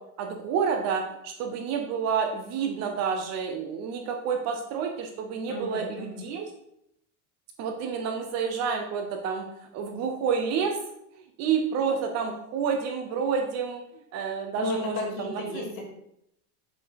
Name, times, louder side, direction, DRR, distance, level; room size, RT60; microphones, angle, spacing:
voice 1, 0.2-6.4 7.6-9.5 9.7-10.8 11.4-13.8 14.1-15.6, right 6 dB, 35° right, 4 dB, 0.8 m, -29 dB
voice 2, 5.5-6.2 14.5-15.8, left 2 dB, 40° left, -2 dB, 2.8 m, -34 dB
7.7 x 4.5 x 5.8 m, 0.79 s
supercardioid pair, 165°, 45 cm